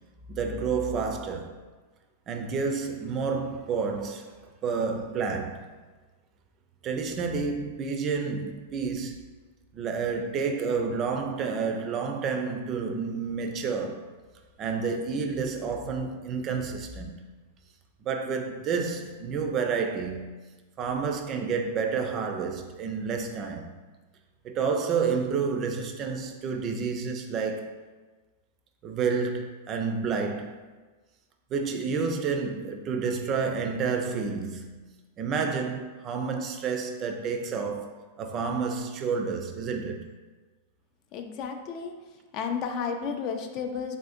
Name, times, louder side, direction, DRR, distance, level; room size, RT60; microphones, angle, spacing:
voice 1, 0.3-1.6 2.3-5.7 6.8-9.2 9.7-14.0 14.6-17.2 18.0-20.3 20.8-23.7 24.4-27.7 28.8-30.6 31.5-37.9 38.2-40.1, right 5 dB, 35° right, 0.4 m, -30 dB
voice 2, 41.1-42.0 42.3-44.0, left 6 dB, 45° left, 0.3 m, -32 dB
3.5 x 2.5 x 2.5 m
hypercardioid pair, 105°, 0 cm